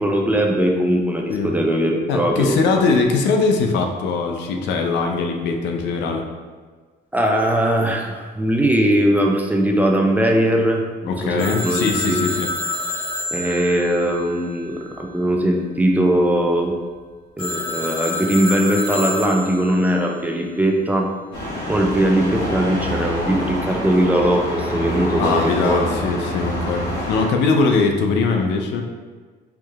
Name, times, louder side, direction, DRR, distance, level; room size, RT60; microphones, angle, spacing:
voice 1, 0.0-2.6 7.1-12.2 13.3-16.8 17.4-21.1 21.7-26.1, right 1 dB, 10° right, 1 dB, 0.4 m, -20 dB
voice 2, 2.1-6.2 11.1-12.5 25.2-28.8, left 4 dB, 80° left, 3 dB, 0.5 m, -21 dB
Telephone, 11.4-15.0 17.4-19.9, left 2 dB, 30° left, 1.3 m, -28 dB
sound 1, 21.3-27.3, equal, 65° left, 1.5 m, -27 dB
4.6 x 2.7 x 2.4 m, 1.4 s
cardioid pair, 110°, 18 cm